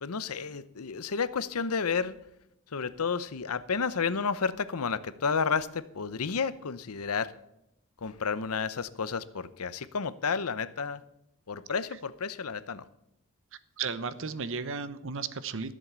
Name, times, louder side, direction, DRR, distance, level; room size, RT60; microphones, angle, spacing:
voice 1, 0.0-2.2 2.7-7.3 8.0-11.0 11.5-12.8, left 5 dB, 80° left, 15 dB, 0.8 m, -31 dB
voice 2, 13.8-15.7, right 5 dB, 60° right, 14 dB, 0.9 m, -34 dB
14.0 x 7.6 x 6.9 m, 0.81 s
head